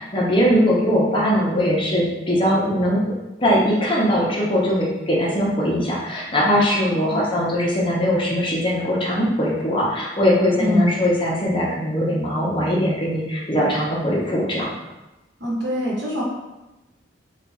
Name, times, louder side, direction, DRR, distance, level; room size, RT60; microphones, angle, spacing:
voice 1, 0.0-3.0 3.4-14.7, equal, 25° left, -5 dB, 0.7 m, -21 dB
voice 2, 6.6-7.3 10.6-11.0 15.4-16.2, equal, 60° right, -5 dB, 1.1 m, -25 dB
3.2 x 2.3 x 4.0 m, 1.0 s
head